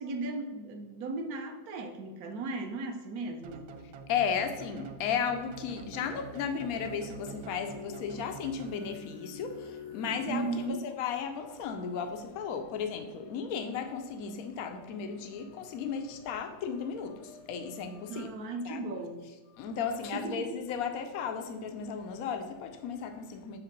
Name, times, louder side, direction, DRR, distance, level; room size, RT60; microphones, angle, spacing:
voice 1, 0.0-3.7 10.3-10.8 18.1-19.2 20.1-20.5, right 3 dB, 65° right, 5 dB, 1.0 m, -36 dB
sound 1, 3.4-9.2, right 5 dB, 80° right, 1.4 m, -47 dB
voice 2, 4.1-18.3 18.6-18.9 19.5-23.6, left 6 dB, 85° left, 6 dB, 0.7 m, -35 dB
sound 2, 5.3-10.7, left 4 dB, 20° right, 0.8 m, -47 dB
7.7 x 3.2 x 5.2 m, 1.2 s
omnidirectional pair, 2.2 m